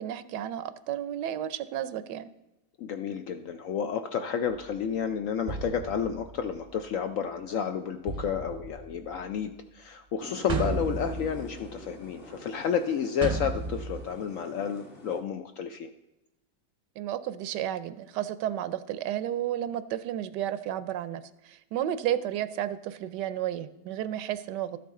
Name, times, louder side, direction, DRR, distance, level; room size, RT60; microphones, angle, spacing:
voice 1, 0.0-2.3 17.0-24.8, right 11 dB, 80° right, 13 dB, 1.2 m, -32 dB
voice 2, 2.8-15.9, left 7 dB, 75° left, 7 dB, 0.7 m, -31 dB
sound 1, 4.5-4.7 5.5-6.9 8.1-9.4 10.5-12.0 13.2-14.1, right 3 dB, 40° right, 0.6 m, -35 dB
sound 2, 10.2-15.2, left 1 dB, 35° left, 1.2 m, -47 dB
13.0 x 8.4 x 3.7 m, 0.96 s
omnidirectional pair, 1.9 m